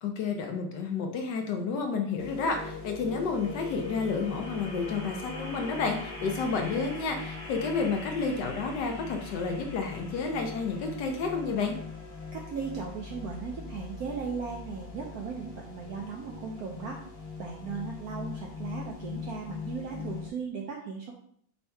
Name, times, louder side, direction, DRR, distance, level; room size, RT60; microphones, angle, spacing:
voice 1, 0.0-11.7, left 4 dB, 70° left, 3 dB, 1.1 m, -30 dB
sound 1, 2.2-20.3, left 4 dB, 35° left, 0.5 m, -41 dB
voice 2, 12.3-17.0 17.4-21.1, right 5 dB, 75° right, 0 dB, 0.8 m, -37 dB
5.5 x 2.7 x 3.3 m, 0.63 s
omnidirectional pair, 2.2 m